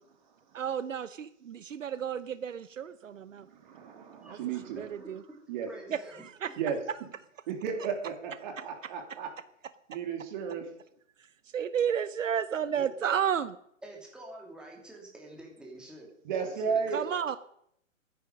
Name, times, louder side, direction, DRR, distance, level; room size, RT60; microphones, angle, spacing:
voice 1, 0.5-3.5 4.3-4.4 4.8-5.2 5.9-6.0 6.4-6.6 8.5-8.6 11.5-13.5 16.9-17.4, right 8 dB, 75° right, 14 dB, 0.9 m, -31 dB
voice 2, 3.6-4.8 5.5-5.7 6.6-6.8 7.5-9.3 9.9-10.7 16.2-17.0, right 6 dB, 35° right, 3 dB, 3.3 m, -33 dB
voice 3, 4.2-5.1 5.7-6.2 12.8-13.2 13.8-16.1 16.4-17.3, right 1 dB, ahead, -1 dB, 2.8 m, -48 dB
21.5 x 10.5 x 5.3 m, 0.71 s
hypercardioid pair, 150°, 39 cm